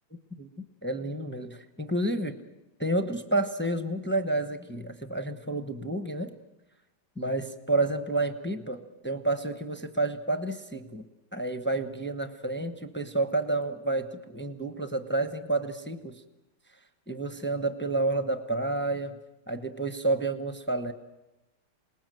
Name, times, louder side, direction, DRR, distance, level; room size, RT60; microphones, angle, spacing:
voice 1, 0.8-2.4 2.8-6.3 7.2-11.0 11.3-16.2 17.1-19.1 19.5-20.9, right 2 dB, 10° left, 7 dB, 0.6 m, -30 dB
27.0 x 20.0 x 7.7 m, 1.0 s
omnidirectional pair, 2.1 m